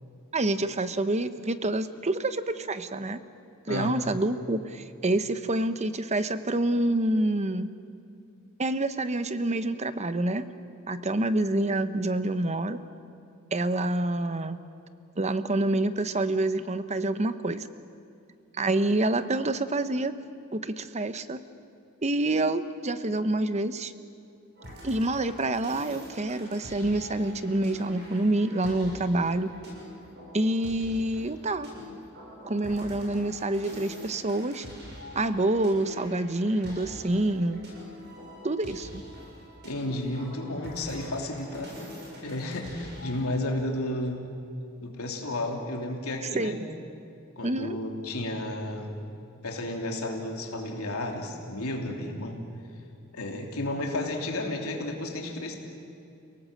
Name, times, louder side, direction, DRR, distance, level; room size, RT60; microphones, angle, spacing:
voice 1, 0.3-3.2 3.7-7.7 8.6-10.5 10.9-12.8 13.5-14.6 15.2-17.7 18.6-20.2 20.5-21.4 22.0-23.9 24.8-29.5 30.3-31.7 32.4-34.7 35.1-37.6 38.4-39.0 46.3-46.7 47.4-47.8, right 2 dB, 30° right, 11 dB, 0.9 m, -27 dB
sound 1, 24.6-43.2, equal, 50° right, 7.7 m, -45 dB
voice 2, 39.6-41.7 42.2-44.3 44.8-46.6 47.4-49.0 49.4-52.4 53.1-55.6, left 1 dB, 85° left, 1 dB, 3.2 m, -32 dB
30.0 x 18.5 x 7.6 m, 2.6 s
head